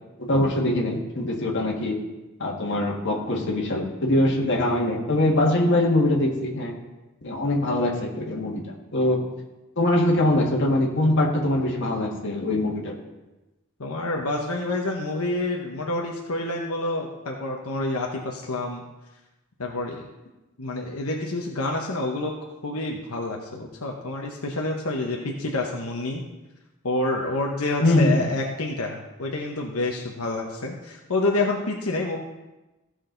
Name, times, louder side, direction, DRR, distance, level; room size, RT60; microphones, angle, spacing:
voice 1, 0.2-2.0 2.4-6.7 7.2-9.2 9.8-13.0 27.8-28.1, left 1 dB, 60° left, -1 dB, 1.9 m, -23 dB
voice 2, 13.8-18.8 19.6-20.1 20.6-22.3 22.6-26.2 26.8-32.2, left 2 dB, 90° left, 0 dB, 1.1 m, -28 dB
15.5 x 6.4 x 3.9 m, 1.1 s
head